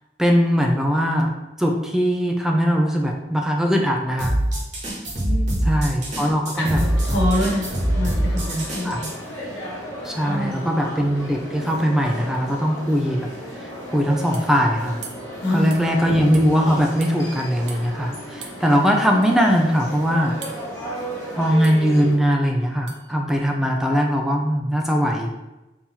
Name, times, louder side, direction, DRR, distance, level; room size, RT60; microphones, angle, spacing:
voice 1, 0.2-1.3 1.6-4.4 5.6-6.8 8.8-9.0 10.0-13.3 13.6-15.0 15.5-20.4 21.3-25.4, equal, 5° right, 1 dB, 0.4 m, -20 dB
sound 1, 4.2-9.1, right 1 dB, 45° right, 1.3 m, -23 dB
voice 2, 5.2-5.7 6.1-6.3 6.6-9.1 10.3-10.7 15.4-16.0, left 1 dB, 75° left, -1 dB, 1.2 m, -27 dB
sound 2, 6.5-22.1, equal, 20° left, 1.5 m, -34 dB
sound 3, 11.2-11.3 11.6-12.5 14.3-14.6 15.0-15.3 15.7-15.9 16.3-16.5 17.0-17.2 17.7-17.8 18.4-18.6 19.2-19.3 20.4-20.7 21.6-21.9 22.9-23.1, right 5 dB, 80° right, 0.6 m, -40 dB
3.7 x 2.9 x 4.1 m, 1.0 s
head